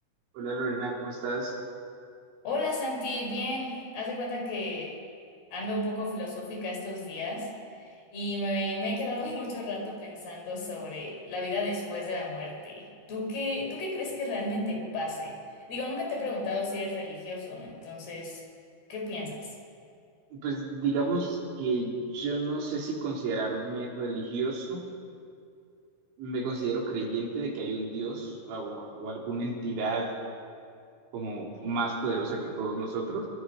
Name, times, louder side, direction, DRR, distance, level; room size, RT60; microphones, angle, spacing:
voice 1, 0.3-1.6 20.3-24.8 26.2-30.1 31.1-33.3, right 3 dB, 70° right, -2 dB, 5.8 m, -31 dB
voice 2, 2.4-5.0 5.5-7.5 7.8-15.4 15.7-18.4 18.9-19.5, left 2 dB, 55° left, 1 dB, 6.3 m, -33 dB
26.0 x 24.0 x 5.7 m, 2.4 s
omnidirectional pair, 5.5 m